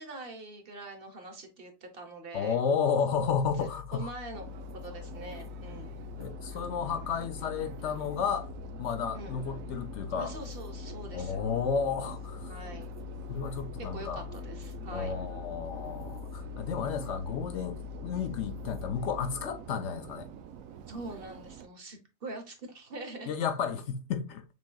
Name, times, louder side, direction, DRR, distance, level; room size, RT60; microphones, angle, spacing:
voice 1, 0.0-2.6 3.6-4.4 4.7-5.9 9.1-9.4 10.2-11.4 12.5-12.9 13.8-15.1 20.9-23.3, right 2 dB, 50° right, 1.1 m, -43 dB
voice 2, 2.3-4.1 6.2-8.5 8.8-10.3 11.1-12.5 13.3-14.2 14.9-20.3 23.3-24.4, left 6 dB, 65° left, 0.8 m, -32 dB
sound 1, 3.1-19.7, left 19 dB, 5° right, 1.1 m, -44 dB
Subway metro underground, 4.3-21.7, right 9 dB, 85° right, 1.0 m, -46 dB
6.3 x 3.4 x 2.2 m
omnidirectional pair, 1.4 m